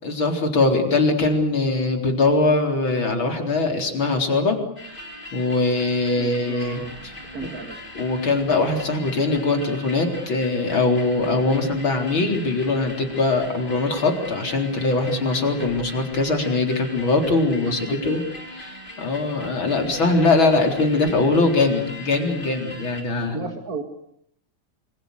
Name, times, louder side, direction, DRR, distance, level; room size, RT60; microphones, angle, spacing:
voice 1, 0.0-4.6 5.3-7.1 7.4-7.6 7.9-18.2 18.6-23.4, left 3 dB, 75° left, 4 dB, 4.8 m, -22 dB
sound 1, 4.8-23.0, left 1 dB, 25° left, 4.6 m, -40 dB
voice 2, 6.1-6.9 7.2-7.8 17.9-18.2 19.8-20.1 23.3-23.8, right 4 dB, 45° right, 5 dB, 2.6 m, -34 dB
27.0 x 26.0 x 6.7 m, 0.69 s
omnidirectional pair, 2.2 m